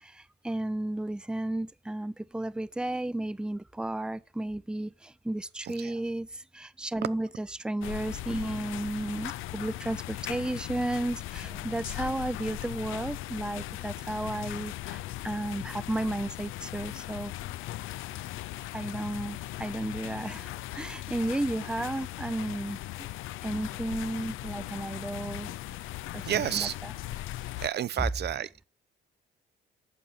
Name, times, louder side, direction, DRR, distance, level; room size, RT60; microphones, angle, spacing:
voice 1, 0.0-6.3 6.5-17.3 18.7-23.1 23.4-25.8 26.1-26.9, right 1 dB, 5° right, 0.5 m, -33 dB
voice 2, 5.6-6.0 26.3-26.7 27.6-28.6, right 10 dB, 55° right, 0.7 m, -31 dB
sound 1, 7.8-27.7, left 16 dB, 85° left, 0.5 m, -39 dB
11.0 x 7.3 x 5.6 m
cardioid pair, 90°, 20 cm